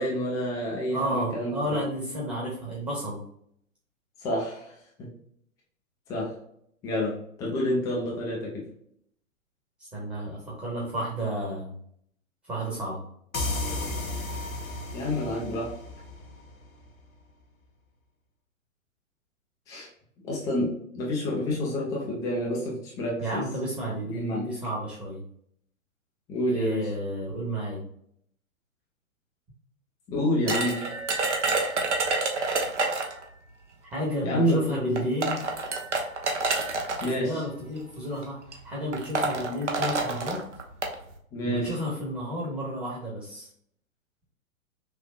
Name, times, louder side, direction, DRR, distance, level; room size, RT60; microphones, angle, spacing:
voice 1, 0.0-1.8 4.2-4.7 5.0-5.1 6.1-6.3 6.8-8.6 14.9-15.7 19.7-19.9 20.2-23.4 24.1-24.4 26.3-26.9 30.1-30.8 31.5-31.7 34.2-35.0 37.0-37.4 41.3-41.7, left 1 dB, 10° left, -4 dB, 0.5 m, -28 dB
voice 2, 0.9-3.2 9.8-11.7 12.4-13.0 23.2-25.2 26.5-27.8 33.9-35.4 37.2-40.4 41.4-43.5, right 1 dB, 15° right, -5 dB, 1.1 m, -31 dB
sound 1, 13.3-16.9, left 2 dB, 75° left, 1.0 m, -33 dB
sound 2, 30.5-33.2 34.3-34.4 35.0-37.1 38.0-38.2 38.5-38.6 38.9-40.9, right 3 dB, 60° right, 1.0 m, -28 dB
5.9 x 2.5 x 2.3 m, 0.68 s
figure-of-eight pair, 115°, 41 cm